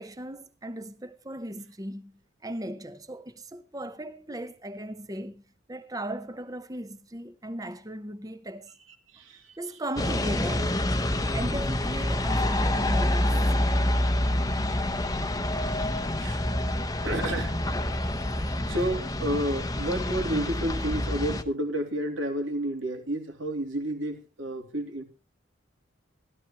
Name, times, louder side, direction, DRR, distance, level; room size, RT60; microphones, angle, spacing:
voice 1, 0.0-2.1 2.4-5.4 5.7-8.7 9.6-10.8 11.3-13.4, right 1 dB, 20° right, 0.8 m, -37 dB
voice 2, 9.1-9.8 16.2-17.6 18.7-25.0, right 1 dB, 85° right, 2.9 m, -31 dB
sound 1, 10.0-21.4, left 1 dB, 20° left, 0.8 m, -27 dB
15.0 x 13.5 x 3.0 m
head